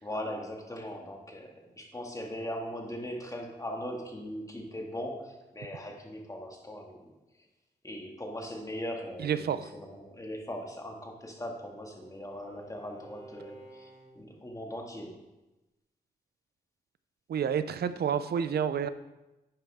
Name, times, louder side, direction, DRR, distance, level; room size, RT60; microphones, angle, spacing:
voice 1, 0.0-7.1 7.8-15.2, equal, 20° left, 1 dB, 2.2 m, -40 dB
voice 2, 9.2-9.7 17.3-18.9, right 8 dB, 70° right, 13 dB, 0.6 m, -29 dB
Bowed string instrument, 10.8-14.5, right 2 dB, 40° right, 2.3 m, -53 dB
11.5 x 8.9 x 3.6 m, 1.0 s
cardioid pair, 75°, 17 cm